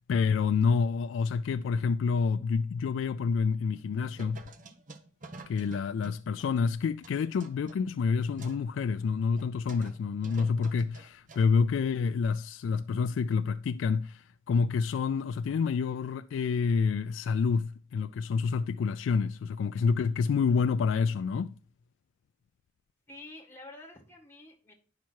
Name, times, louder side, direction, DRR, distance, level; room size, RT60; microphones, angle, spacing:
voice 1, 0.1-4.4 5.5-21.5, left 5 dB, 75° left, 0.3 m, -28 dB
sound 1, 3.7-3.8 4.2-6.7 7.0-8.6 9.0-9.1 9.3-10.0 10.2-11.6, right 3 dB, 40° right, 0.9 m, -49 dB
voice 2, 23.1-24.7, left 2 dB, 10° left, 1.8 m, -48 dB
10.5 x 5.8 x 4.6 m
head